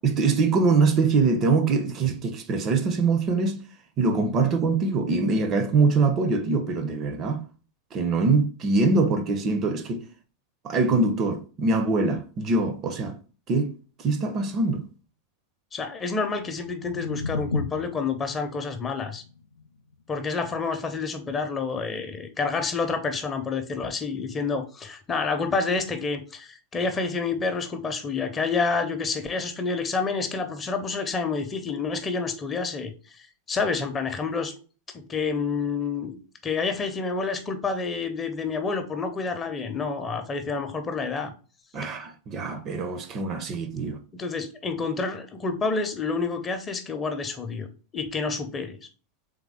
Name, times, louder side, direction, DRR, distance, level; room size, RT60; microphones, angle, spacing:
voice 1, 0.0-3.6 4.0-7.4 7.9-10.1 10.6-13.1 13.5-13.7 14.0-14.8 41.7-44.0, right 3 dB, 30° right, 0.6 m, -23 dB
voice 2, 15.7-19.2 20.1-34.5 34.9-36.1 36.4-41.3 44.1-47.7 47.9-48.8, left 4 dB, 20° left, 0.7 m, -28 dB
sound 1, 16.4-22.5, left 4 dB, 75° left, 0.3 m, -37 dB
3.6 x 3.4 x 3.5 m
figure-of-eight pair, 90°, 0 cm